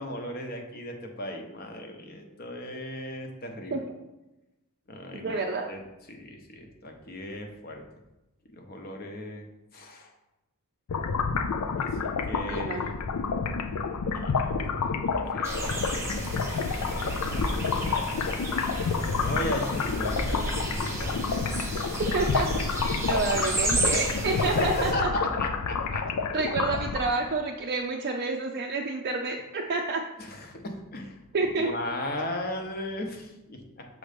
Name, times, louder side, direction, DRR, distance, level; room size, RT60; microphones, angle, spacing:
voice 1, 0.0-3.8 4.9-5.4 5.7-5.8 6.1-7.8 8.5-9.5 9.7-10.1 11.8-12.9 14.1-18.3 19.2-21.4 24.4-26.3 30.2-31.2 31.6-33.9, left 1 dB, 45° left, 3 dB, 0.8 m, -37 dB
voice 2, 5.1-5.7 12.4-12.8 22.0-22.5 23.1-25.1 26.3-30.0 31.3-31.7, right 3 dB, 45° right, 0 dB, 0.4 m, -29 dB
sound 1, 10.9-27.3, left 5 dB, 85° left, 0.5 m, -29 dB
sound 2, 15.4-24.9, right 2 dB, 10° right, 0.9 m, -32 dB
6.4 x 3.0 x 5.1 m, 0.98 s
head